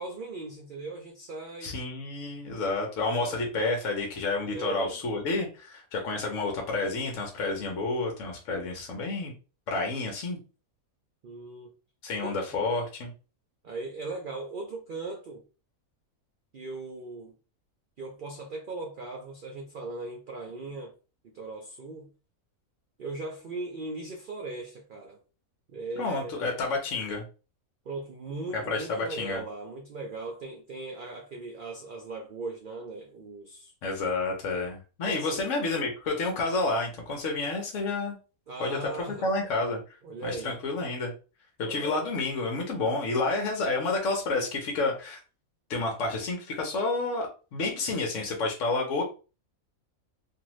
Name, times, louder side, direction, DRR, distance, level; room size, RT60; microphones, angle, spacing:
voice 1, 0.0-1.7 3.0-3.4 4.5-5.0 11.2-11.7 12.2-12.4 13.6-15.4 16.5-17.4 18.0-20.9 21.3-22.1 23.0-25.2 25.7-26.4 27.9-33.7 35.0-35.4 38.5-39.7 40.0-40.6 41.7-42.1, right 3 dB, 85° right, 0.4 m, -38 dB
voice 2, 1.6-9.3 9.7-10.4 12.0-13.1 26.0-27.2 28.5-29.4 33.8-38.2 38.6-40.0 40.2-41.1 41.6-45.2 45.7-49.0, left 3 dB, 65° left, 1.0 m, -30 dB
2.7 x 2.5 x 3.0 m
omnidirectional pair, 1.5 m